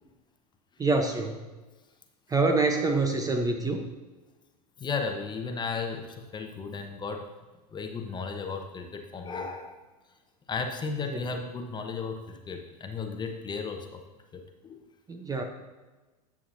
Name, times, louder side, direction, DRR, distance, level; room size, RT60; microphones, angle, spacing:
voice 1, 0.8-1.4 2.3-3.8 11.1-11.2 15.1-15.4, right 3 dB, 15° right, 5 dB, 0.8 m, -26 dB
voice 2, 4.8-7.3 7.7-9.7 10.5-14.0 14.3-14.8, left 4 dB, 20° left, 4 dB, 1.0 m, -34 dB
11.0 x 7.4 x 2.7 m, 1.2 s
hypercardioid pair, 95°, 21 cm